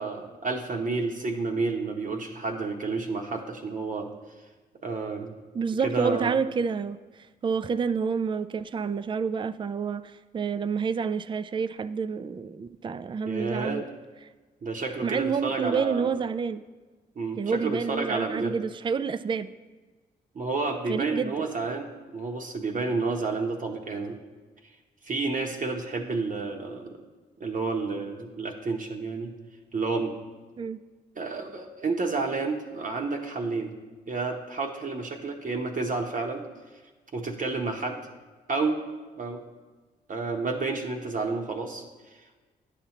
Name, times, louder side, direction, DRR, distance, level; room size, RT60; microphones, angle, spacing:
voice 1, 0.0-4.1 4.8-5.3 5.8-6.4 13.3-13.8 14.6-16.1 17.2-18.5 20.3-21.9 22.1-24.2 25.0-27.0 27.4-29.3 29.7-30.1 31.2-33.7 34.1-36.4 37.1-38.0 38.5-38.8 39.2-39.4 40.1-42.4, right 3 dB, 50° right, 1 dB, 0.8 m, -30 dB
voice 2, 5.5-7.0 7.4-13.8 15.0-16.6 17.4-19.5 20.9-21.3 30.6-30.8, right 6 dB, 25° right, 14 dB, 0.3 m, -28 dB
9.9 x 5.7 x 2.9 m, 1.3 s
supercardioid pair, 50°, 18 cm